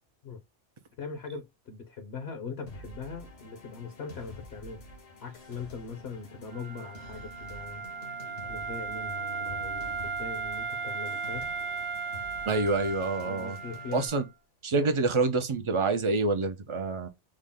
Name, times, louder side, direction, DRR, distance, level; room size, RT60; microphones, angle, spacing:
voice 1, 1.0-4.8 5.2-7.8 8.5-11.5 13.2-14.1 14.7-14.9, left 5 dB, 65° left, 0.9 m, -40 dB
sound 1, 2.7-14.1, left 1 dB, 80° left, 1.4 m, -48 dB
Wind instrument woodwind instrument, 6.5-14.3, right 5 dB, 80° right, 1.1 m, -36 dB
voice 2, 12.5-13.6 13.9-14.3 14.6-17.1, right 3 dB, 45° right, 0.4 m, -27 dB
3.8 x 2.1 x 3.5 m
omnidirectional pair, 1.2 m